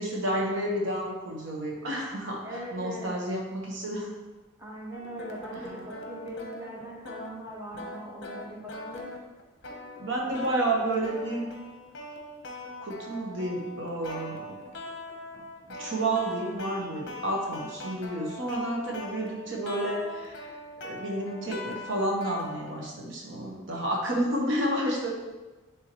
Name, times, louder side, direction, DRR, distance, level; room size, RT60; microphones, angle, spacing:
voice 1, 0.0-4.1 5.5-5.7 10.0-11.4 12.8-14.6 15.7-20.5 20.8-25.1, right 1 dB, 70° right, -1 dB, 1.1 m, -30 dB
voice 2, 2.4-3.1 4.6-9.1, right 1 dB, 15° right, -5 dB, 1.2 m, -40 dB
sound 1, 4.9-22.9, left 2 dB, 55° left, 0.9 m, -41 dB
9.7 x 3.6 x 3.0 m, 1.2 s
head